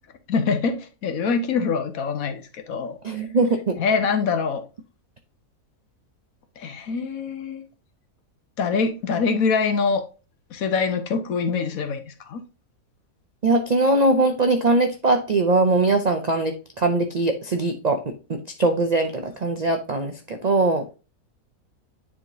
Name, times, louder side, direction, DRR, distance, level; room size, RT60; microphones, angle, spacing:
voice 1, 0.3-3.0 3.8-4.6 6.6-7.6 8.6-10.0 10.5-12.4, left 5 dB, 65° left, 1.3 m, -24 dB
voice 2, 3.0-3.8 13.4-20.8, right 2 dB, 60° right, 0.4 m, -21 dB
9.9 x 3.7 x 2.6 m
omnidirectional pair, 1.6 m